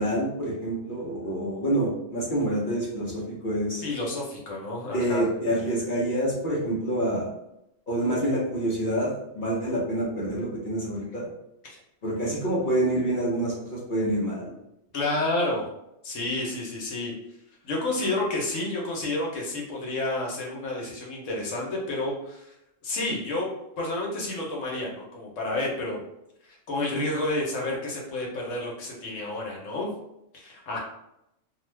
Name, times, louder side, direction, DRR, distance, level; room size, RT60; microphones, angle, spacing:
voice 1, 0.0-3.8 4.9-7.3 7.9-11.3 12.0-14.5, right 1 dB, 45° left, -6 dB, 0.8 m, -27 dB
voice 2, 3.8-5.3 11.6-11.8 14.9-15.7 16.0-17.1 17.6-22.5 22.8-23.5 23.8-26.0 26.7-29.9 30.3-30.8, left 2 dB, 75° left, -2 dB, 1.2 m, -30 dB
2.7 x 2.4 x 3.2 m, 0.84 s
omnidirectional pair, 1.3 m